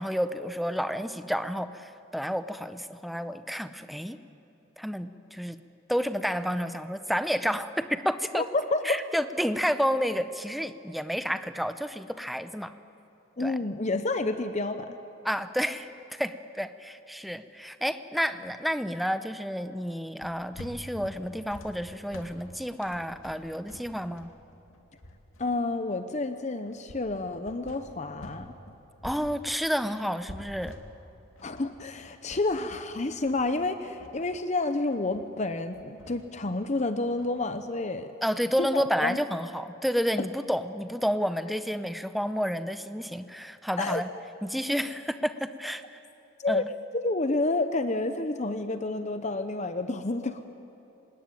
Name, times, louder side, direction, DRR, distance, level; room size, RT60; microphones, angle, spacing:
voice 1, 0.0-4.2 4.8-5.6 5.9-8.4 8.8-12.7 13.4-13.6 15.2-24.3 29.0-30.8 38.2-44.1 44.4-46.0 46.5-46.7, equal, ahead, 10 dB, 0.7 m, -30 dB
voice 2, 8.3-9.0 13.4-15.0 25.4-28.5 31.4-38.1 38.6-39.2 40.2-40.3 43.8-44.0 46.4-46.7 46.9-50.4, left 2 dB, 35° left, 9 dB, 0.8 m, -29 dB
sound 1, 20.2-28.5 28.7-37.5, left 1 dB, 85° left, 2.5 m, -48 dB
25.0 x 20.5 x 9.1 m, 2.9 s
head